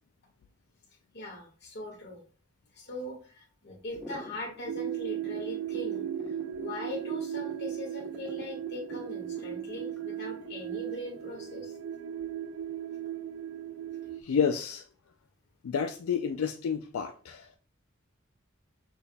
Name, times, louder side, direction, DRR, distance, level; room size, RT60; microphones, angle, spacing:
voice 1, 1.1-2.2 2.7-11.8, left 1 dB, 55° left, 1.5 m, -41 dB
sound 1, 3.9-11.7, left 1 dB, ahead, 0.9 m, -47 dB
sound 2, 4.7-14.2, right 10 dB, 70° right, 0.3 m, -37 dB
voice 2, 14.2-14.9 15.6-17.6, left 7 dB, 90° left, 0.4 m, -30 dB
6.1 x 3.5 x 2.2 m
head